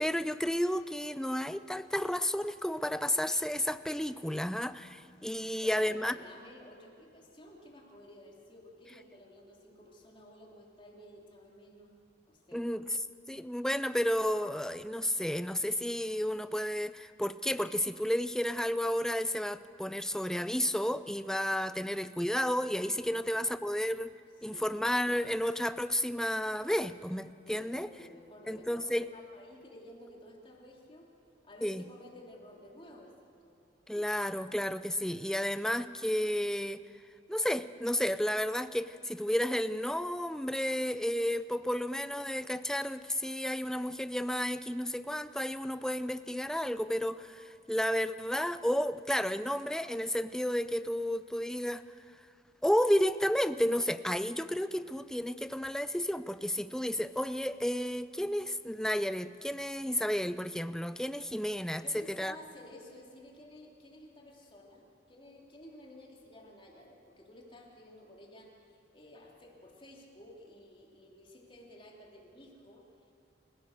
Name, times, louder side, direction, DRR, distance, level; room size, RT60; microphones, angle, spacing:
voice 1, 0.0-6.2 12.5-13.0 13.3-24.1 24.4-27.9 28.5-29.1 31.6-31.8 33.9-36.8 37.3-51.8 52.6-62.3, equal, 5° left, 13 dB, 0.4 m, -32 dB
voice 2, 5.4-11.9 12.3-12.7 23.0-23.5 24.5-24.9 27.4-31.1 31.4-33.1 33.4-33.6 61.8-73.1, left 1 dB, 30° left, -1 dB, 3.2 m, -53 dB
28.5 x 16.5 x 6.6 m, 2.6 s
head